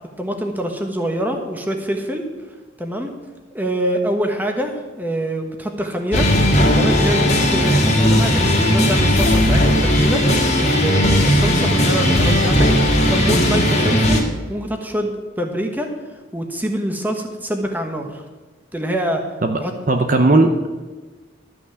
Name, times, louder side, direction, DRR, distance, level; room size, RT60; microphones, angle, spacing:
voice 1, 0.2-2.2 2.8-3.1 3.5-6.3 6.7-10.2 10.6-12.7 13.1-15.9 16.3-18.2 18.7-19.2 19.6-19.7, right 1 dB, 10° right, 3 dB, 1.3 m, -25 dB
sound 1, 6.1-14.2, equal, 35° left, 1.9 m, -16 dB
voice 2, 19.9-20.7, right 2 dB, 45° right, 5 dB, 0.8 m, -16 dB
12.5 x 6.2 x 7.6 m, 1.3 s
head